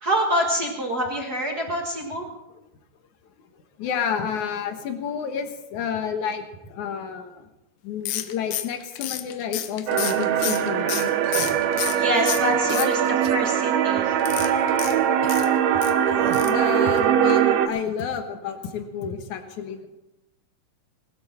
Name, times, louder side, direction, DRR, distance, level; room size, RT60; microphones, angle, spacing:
voice 1, 0.0-2.3 11.9-13.0 13.3-14.1, equal, 50° right, 1 dB, 1.2 m, -26 dB
voice 2, 3.8-7.5 7.8-11.2 12.7-12.9 16.4-19.9, left 7 dB, 60° left, 6 dB, 2.4 m, -30 dB
sound 1, 8.1-12.0 12.3-13.3 14.2-15.9 16.3-16.6 16.9-17.0 17.3-17.4, left 13 dB, 80° left, 2.8 m, -31 dB
sound 2, 9.9-17.7, right 9 dB, 85° right, 2.9 m, -21 dB
sound 3, 10.4-10.7 11.2-11.6 12.2-12.7 13.2-13.5 14.3-14.7 15.2-15.4 16.0-16.5, right 8 dB, 70° right, 2.0 m, -38 dB
20.0 x 13.5 x 4.4 m, 0.94 s
omnidirectional pair, 4.4 m